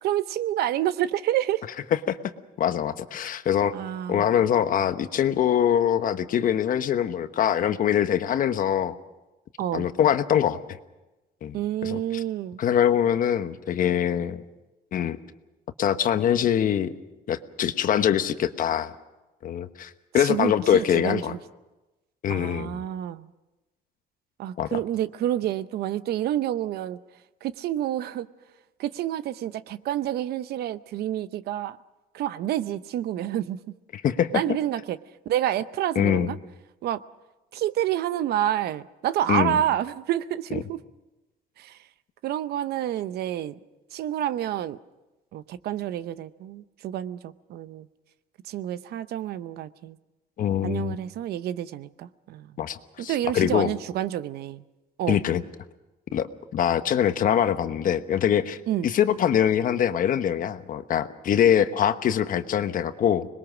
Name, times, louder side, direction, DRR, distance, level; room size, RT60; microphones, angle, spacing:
voice 1, 0.0-1.6 3.7-4.2 9.6-9.9 11.5-12.6 20.2-21.4 22.3-23.3 24.4-27.0 27.4-28.3 28.8-31.8 32.1-33.6 34.3-35.0 35.3-36.4 36.8-37.0 37.5-40.8 41.6-41.8 42.2-43.5 43.9-44.8 45.3-47.9 48.5-50.0 50.6-52.5 53.0-54.6 55.0-55.2 58.7-58.9, right 12 dB, 70° right, 14 dB, 0.8 m, -28 dB
voice 2, 2.6-3.7 4.1-9.0 9.7-10.6 11.4-12.2 12.6-14.4 14.9-15.2 15.8-16.9 17.3-18.9 19.4-21.4 22.2-22.8 24.6-24.8 33.9-34.4 35.9-36.3 39.3-39.6 40.5-40.6 50.4-51.0 52.6-53.7 55.1-55.4 56.1-56.3 56.5-58.6 58.8-63.3, left 9 dB, 55° left, 10 dB, 1.2 m, -23 dB
26.0 x 21.0 x 6.2 m, 1.1 s
cardioid pair, 110°, 17 cm